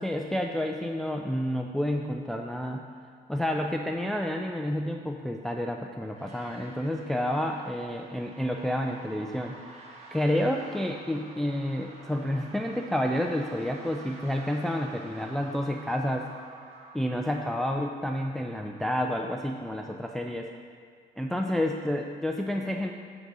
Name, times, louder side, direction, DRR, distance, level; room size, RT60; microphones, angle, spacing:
voice 1, 0.0-2.9 3.3-16.3 16.9-20.5 21.2-22.9, left 1 dB, ahead, 2 dB, 0.4 m, -30 dB
sound 1, 6.1-19.8, right 2 dB, 40° right, 1.6 m, -50 dB
9.9 x 3.9 x 6.3 m, 2.1 s
cardioid pair, 110°, 17 cm